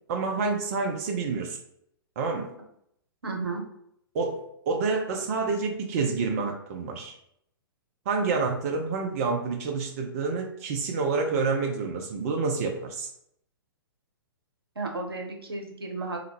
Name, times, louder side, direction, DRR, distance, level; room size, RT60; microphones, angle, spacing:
voice 1, 0.1-1.6 2.2-2.5 4.1-4.4 4.7-7.2 8.1-13.1, right 4 dB, 40° right, 2 dB, 0.5 m, -28 dB
voice 2, 3.2-3.6 14.7-16.2, right 3 dB, 75° right, 2 dB, 0.9 m, -33 dB
3.5 x 2.2 x 3.1 m, 0.72 s
figure-of-eight pair, 115°, 13 cm